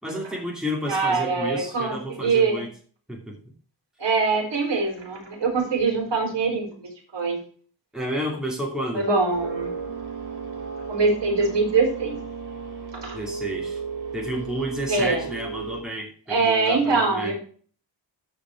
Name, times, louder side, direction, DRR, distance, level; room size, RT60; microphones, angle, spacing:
voice 1, 0.0-2.7 3.1-3.4 7.9-9.1 13.1-13.8 14.1-17.4, equal, ahead, -1 dB, 2.6 m, -31 dB
voice 2, 0.9-1.9 2.2-2.6 4.0-6.7 7.1-7.4 8.9-9.7 10.9-12.2 12.9-13.2 14.9-15.2 16.3-17.4, right 4 dB, 90° right, 1 dB, 5.3 m, -23 dB
sound 1, 9.3-15.8, right 5 dB, 65° right, 2.4 m, -34 dB
14.0 x 5.2 x 4.6 m, 0.43 s
wide cardioid pair, 140°, 42 cm